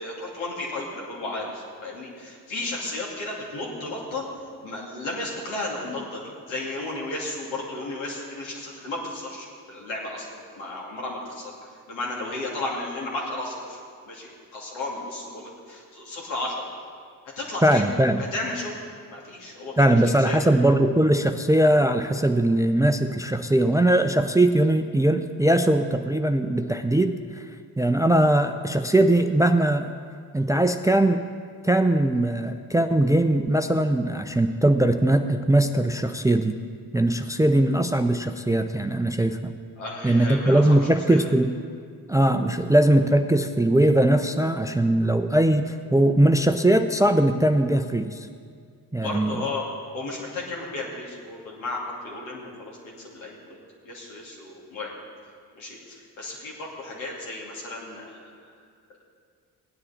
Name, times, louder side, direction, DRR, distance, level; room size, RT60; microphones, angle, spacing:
voice 1, 0.0-4.2 4.6-11.5 11.9-13.8 14.1-16.7 17.4-17.9 18.2-18.7 19.1-20.4 39.8-41.3 49.0-49.7 49.9-53.6 53.8-54.9 55.5-58.5, left 2 dB, 75° left, -3 dB, 2.6 m, -34 dB
voice 2, 17.6-18.2 19.8-27.2 27.8-29.9 30.3-31.3 31.6-36.6 36.9-39.5 40.0-41.5 42.1-48.3 48.9-49.4, right 1 dB, 5° right, 8 dB, 0.5 m, -20 dB
16.0 x 9.7 x 4.2 m, 2.1 s
hypercardioid pair, 45°, 47 cm